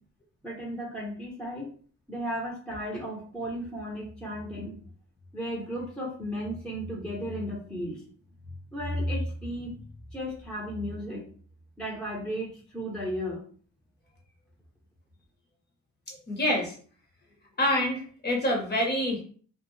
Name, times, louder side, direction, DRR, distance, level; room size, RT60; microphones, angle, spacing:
voice 1, 0.4-1.7 2.1-4.8 5.3-8.1 8.7-9.8 10.1-11.3 11.8-13.4, equal, 5° left, -3 dB, 0.9 m, -34 dB
voice 2, 16.1-16.7 17.6-19.2, left 1 dB, 35° left, -1 dB, 1.0 m, -27 dB
2.4 x 2.2 x 3.1 m, 0.43 s
cardioid pair, 90°, 30 cm